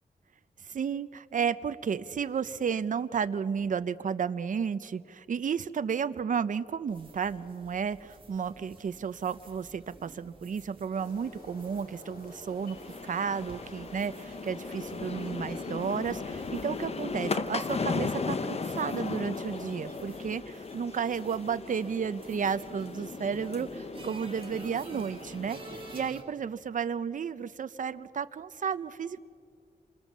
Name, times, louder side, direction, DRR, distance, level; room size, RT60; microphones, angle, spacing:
voice 1, 0.6-12.8 13.0-25.6 25.9-29.2, right 6 dB, 60° right, 12 dB, 0.7 m, -32 dB
sound 1, 6.9-26.2, right 3 dB, 35° right, 2.6 m, -52 dB
sound 2, 10.9-20.2, left 2 dB, 85° left, 5.1 m, -48 dB
sound 3, 12.6-26.1, left 4 dB, 40° left, 1.1 m, -37 dB
28.5 x 25.5 x 7.4 m, 2.3 s
wide cardioid pair, 150°, 15 cm